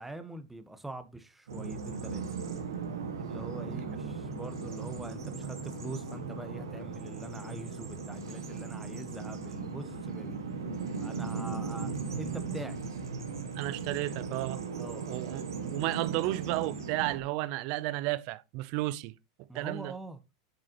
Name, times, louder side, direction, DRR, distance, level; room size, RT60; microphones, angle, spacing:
voice 1, 0.0-2.2 3.1-10.4 11.0-12.8 14.8-15.1 19.5-20.2, right 2 dB, 5° right, 1.2 m, -44 dB
Bird vocalization bird call bird song, 1.5-17.2, right 5 dB, 85° right, 1.8 m, -38 dB
sound 1, 3.9-12.8, left 5 dB, 70° left, 3.4 m, -48 dB
voice 2, 13.6-14.6 15.0-19.1 19.5-19.9, right 17 dB, 55° right, 0.6 m, -33 dB
8.1 x 6.3 x 3.0 m
hypercardioid pair, 105°, 2 cm